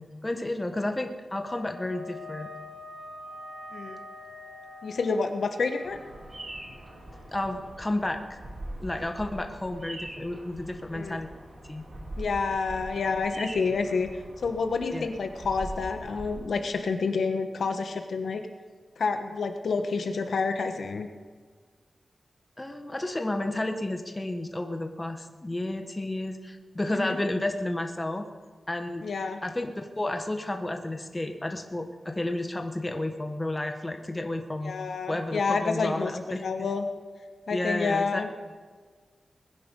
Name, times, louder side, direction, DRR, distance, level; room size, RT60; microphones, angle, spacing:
voice 1, 0.0-2.5 7.3-8.4 8.8-11.3 11.7-11.8 14.9-15.1 22.6-28.2 28.7-29.0 29.4-34.7 35.1-36.7 37.5-38.2, left 1 dB, 20° left, 5 dB, 1.2 m, -31 dB
sound 1, 1.4-7.8, left 2 dB, 15° right, 4.7 m, -45 dB
voice 2, 4.8-6.0 10.9-11.2 12.2-14.1 14.4-18.4 19.0-21.1 26.9-27.2 29.0-29.4 34.6-36.1 36.4-36.8 37.5-38.3, left 4 dB, 80° left, 6 dB, 1.3 m, -28 dB
Bird vocalization bird call bird song, 5.8-16.3, right 1 dB, 35° right, 2.7 m, -42 dB
20.5 x 10.5 x 5.4 m, 1.5 s
wide cardioid pair, 125°, 0 cm